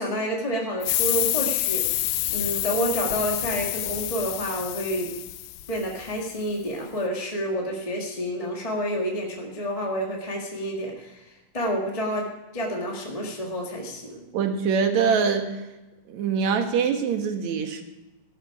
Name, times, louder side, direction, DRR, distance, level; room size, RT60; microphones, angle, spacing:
voice 1, 0.0-5.1 5.7-12.3 12.5-14.2, equal, 15° left, -1 dB, 1.3 m, -29 dB
sound 1, 0.8-6.1, left 17 dB, 80° left, 1.8 m, -28 dB
voice 2, 14.3-15.6 16.1-17.8, right 6 dB, 65° right, 5 dB, 2.7 m, -24 dB
16.0 x 12.5 x 4.9 m, 1.0 s
omnidirectional pair, 3.7 m